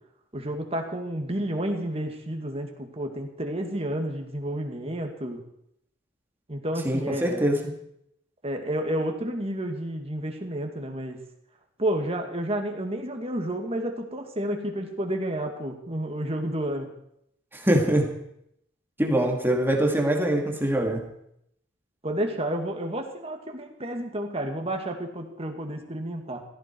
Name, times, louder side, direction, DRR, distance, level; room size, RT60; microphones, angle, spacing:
voice 1, 0.3-5.4 6.5-7.5 8.4-11.2 11.8-16.9 22.0-26.4, right 1 dB, 30° right, 3 dB, 2.2 m, -30 dB
voice 2, 6.8-7.6 17.5-18.1 19.0-21.1, right 1 dB, 10° right, 1 dB, 2.3 m, -23 dB
16.5 x 15.0 x 4.6 m, 0.75 s
head